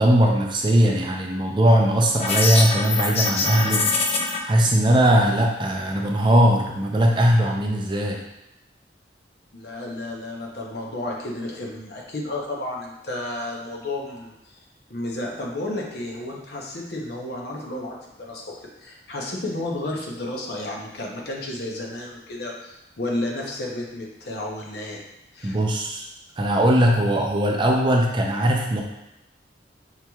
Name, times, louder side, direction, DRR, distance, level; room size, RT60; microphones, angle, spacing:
voice 1, 0.0-3.9 4.5-8.2 25.4-26.1 26.4-28.8, right 1 dB, 25° right, 0 dB, 0.4 m, -19 dB
sound 1, 2.2-4.4, left 3 dB, 35° left, 0.4 m, -23 dB
voice 2, 9.5-14.3 14.9-18.4 18.8-25.0 25.3-25.6, left 1 dB, 60° left, -1 dB, 0.8 m, -32 dB
5.5 x 3.0 x 2.3 m, 0.90 s
head